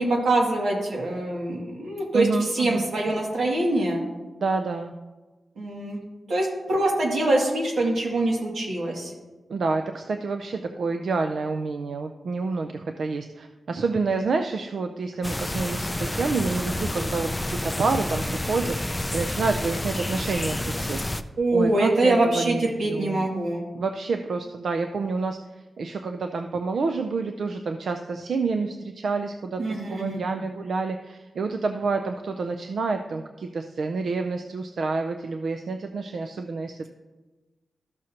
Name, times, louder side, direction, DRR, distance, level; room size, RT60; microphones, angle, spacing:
voice 1, 0.0-4.0 5.6-6.0 6.3-9.1 21.4-23.6 29.6-30.2, right 2 dB, 85° right, -2 dB, 2.3 m, -24 dB
voice 2, 2.1-2.9 4.4-4.9 9.5-21.0 21.5-23.3 23.7-25.4 25.8-36.9, right 4 dB, 60° right, 6 dB, 0.4 m, -28 dB
sound 1, 15.2-21.2, left 1 dB, 10° left, 0.3 m, -29 dB
13.0 x 6.3 x 2.9 m, 1.2 s
wide cardioid pair, 160°, 0 cm